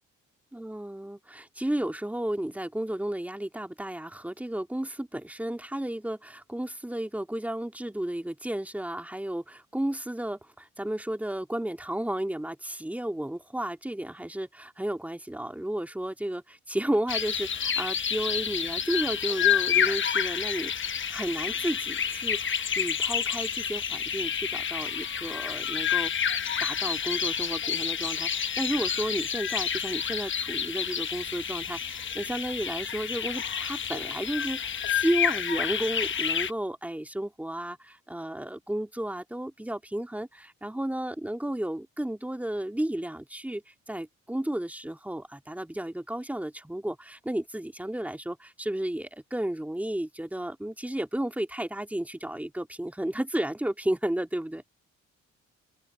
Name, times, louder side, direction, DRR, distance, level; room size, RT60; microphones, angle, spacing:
voice 1, 0.5-20.7 21.1-26.1 26.6-43.6 43.9-54.6, right 1 dB, 5° right, 2.3 m, -33 dB
sound 1, 17.1-36.5, left 8 dB, 40° left, 1.1 m, -29 dB
cardioid pair, 90°, 30 cm